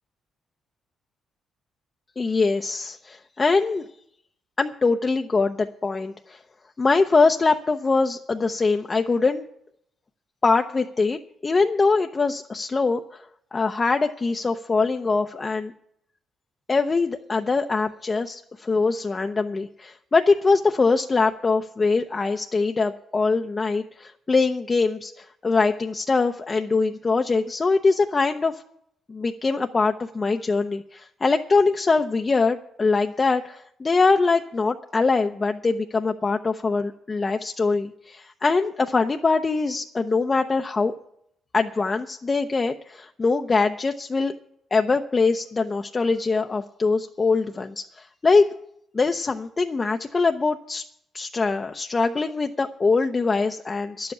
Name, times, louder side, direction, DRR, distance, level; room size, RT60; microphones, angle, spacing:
voice 1, 2.2-3.9 4.6-6.4 6.8-9.4 10.4-13.0 13.5-15.7 16.7-28.6 29.1-40.9 41.5-44.3 44.7-48.5 48.9-50.8 51.1-54.1, left 4 dB, 30° left, 5 dB, 0.7 m, -23 dB
11.0 x 7.8 x 9.6 m, 0.72 s
cardioid pair, 90°, 0 cm